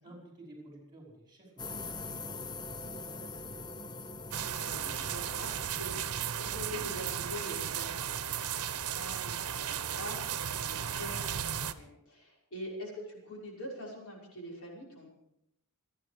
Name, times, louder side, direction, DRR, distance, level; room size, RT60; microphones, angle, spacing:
voice 1, 0.0-2.4 2.8-3.2 3.5-3.9, right 1 dB, 20° right, -1 dB, 5.4 m, -53 dB
sound 1, 1.6-7.7, left 3 dB, 20° left, 0.6 m, -44 dB
sound 2, 4.3-11.7, right 9 dB, 80° right, 0.9 m, -35 dB
voice 2, 4.6-15.1, equal, 70° left, -2 dB, 5.8 m, -44 dB
27.5 x 9.9 x 5.1 m, 0.82 s
head